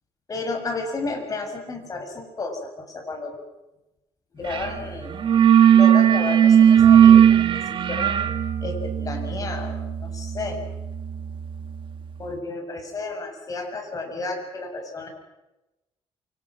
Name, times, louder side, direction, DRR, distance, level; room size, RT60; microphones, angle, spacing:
voice 1, 0.3-3.4 4.3-5.2 5.7-8.2 8.6-10.6 12.2-15.1, left 3 dB, 30° left, 3 dB, 6.9 m, -32 dB
sound 1, 4.5-4.7 5.0-11.7, right 9 dB, 50° right, 1.6 m, -17 dB
28.0 x 25.5 x 6.3 m, 0.99 s
cardioid pair, 115°, 11 cm